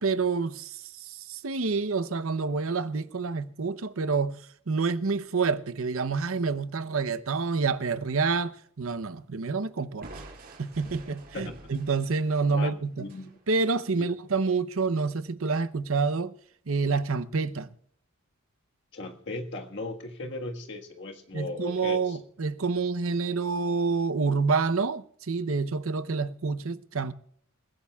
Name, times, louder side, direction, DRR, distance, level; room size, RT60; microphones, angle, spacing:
voice 1, 0.0-10.1 10.6-13.1 13.5-16.3 16.7-17.7 21.3-27.1, right 4 dB, 80° right, 0.8 m, -28 dB
Crushing, 10.0-13.8, right 2 dB, 45° right, 4.8 m, -48 dB
voice 2, 12.5-13.3 13.9-14.1 18.9-22.2, left 2 dB, 55° left, 1.6 m, -37 dB
28.5 x 16.0 x 2.4 m
head